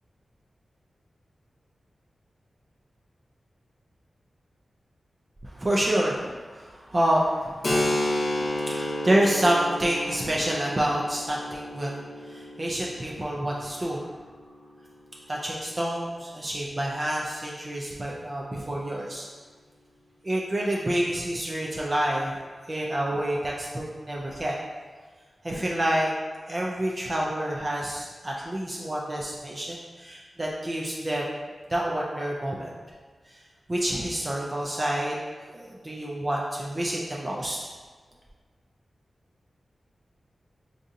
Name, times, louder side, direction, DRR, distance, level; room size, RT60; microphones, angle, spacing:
voice 1, 5.5-7.9 8.3-14.0 15.3-19.3 20.2-22.3 22.7-24.5 25.4-26.1 26.5-31.4 31.7-32.7 33.3-33.4 33.7-35.2 35.5-37.6, right 1 dB, 25° right, -3 dB, 0.4 m, -28 dB
Keyboard (musical), 7.6-15.0, left 1 dB, 35° left, 0.4 m, -31 dB
4.9 x 2.7 x 2.5 m, 1.5 s
wide cardioid pair, 130°, 0 cm